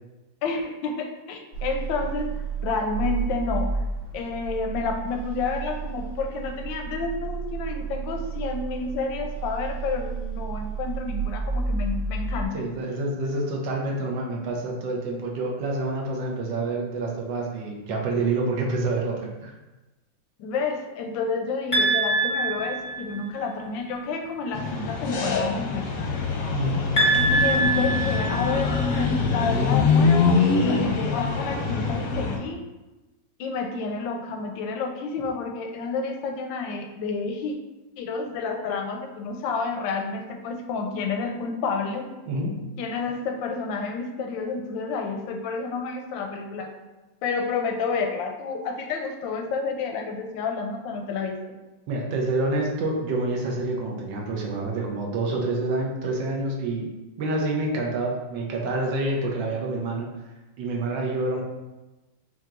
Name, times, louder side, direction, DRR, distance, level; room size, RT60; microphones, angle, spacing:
voice 1, 0.4-2.3 2.6-3.7 4.1-12.7 20.4-25.9 26.3-26.5 27.3-32.7 33.4-37.6 38.0-42.1 42.8-46.7 47.2-51.4, left 4 dB, 90° left, 4 dB, 1.3 m, -30 dB
sound 1, 1.5-12.5, right 4 dB, 65° right, 1.7 m, -31 dB
voice 2, 12.5-19.5 26.5-26.8 42.3-42.5 51.9-56.9 57.2-60.1 60.6-61.4, right 2 dB, 85° right, -1 dB, 1.5 m, -27 dB
sound 2, 21.7-23.4 27.0-29.0, right 2 dB, 25° left, 0.7 m, -24 dB
sound 3, 24.5-32.4, left 4 dB, 65° left, 0.9 m, -24 dB
5.5 x 2.9 x 2.5 m, 1.1 s
omnidirectional pair, 2.0 m